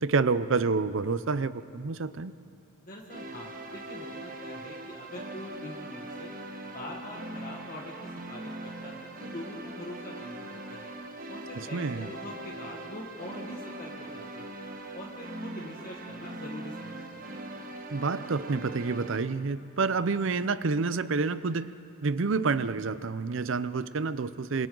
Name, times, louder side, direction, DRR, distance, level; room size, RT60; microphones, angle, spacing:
voice 1, 0.0-2.3 11.7-12.1 17.9-21.7 22.0-24.7, right 4 dB, 70° right, 14 dB, 0.6 m, -28 dB
voice 2, 2.8-6.3 6.7-10.9 11.3-14.5 14.9-17.3, left 1 dB, 45° left, -2 dB, 1.8 m, -43 dB
sound 1, 3.1-19.2, right 1 dB, 45° right, 1.4 m, -41 dB
27.0 x 26.5 x 3.9 m, 2.6 s
head